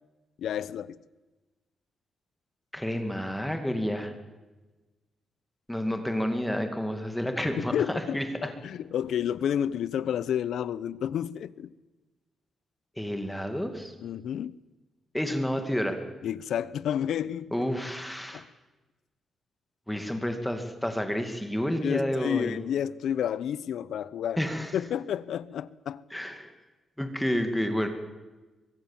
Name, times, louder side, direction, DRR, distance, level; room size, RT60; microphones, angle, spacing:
voice 1, 0.4-1.0 7.6-11.7 14.0-14.6 16.2-17.7 18.3-18.5 21.8-24.4 24.7-26.0, left 9 dB, 90° left, 0.8 m, -30 dB
voice 2, 2.7-4.1 5.7-8.5 13.0-13.9 15.1-16.0 17.5-18.4 19.9-22.6 24.4-24.7 26.1-26.5 27.0-27.9, equal, 5° left, 2.4 m, -30 dB
24.0 x 22.5 x 7.4 m
wide cardioid pair, 165°, 0 cm